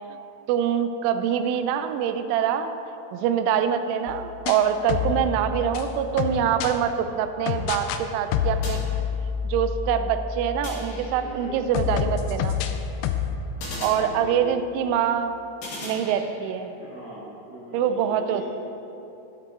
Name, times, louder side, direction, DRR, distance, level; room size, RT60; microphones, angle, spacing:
voice 1, 0.5-2.7 3.1-8.8 9.4-12.6 13.8-15.4 15.8-16.7 17.7-18.5, right 8 dB, 80° right, 9 dB, 2.9 m, -24 dB
sound 1, 4.1-6.8 7.5-8.0 8.3-11.3 11.7-13.4, left 7 dB, 85° left, 2.6 m, -28 dB
sound 2, 8.6-9.5 10.6-11.5 13.6-14.7 15.6-16.7, left 1 dB, 65° left, 5.0 m, -39 dB
voice 2, 11.2-11.5 13.7-14.5 16.8-18.5, right 1 dB, 50° right, -9 dB, 1.9 m, -40 dB
16.5 x 7.7 x 3.7 m, 2.9 s
omnidirectional pair, 5.8 m